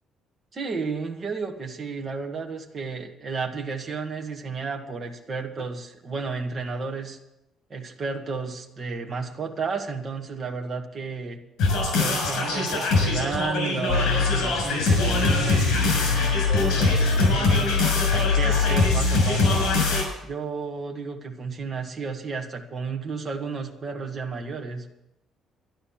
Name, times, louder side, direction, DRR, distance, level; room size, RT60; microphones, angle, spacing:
voice 1, 0.5-7.2 7.7-11.4 11.9-17.7 18.1-19.6 20.2-24.8, right 4 dB, 25° right, 2 dB, 1.4 m, -32 dB
sound 1, 11.6-20.0, left 3 dB, 70° left, 6.6 m, -22 dB
12.0 x 11.5 x 7.2 m, 0.88 s
cardioid pair, 180°, 0 cm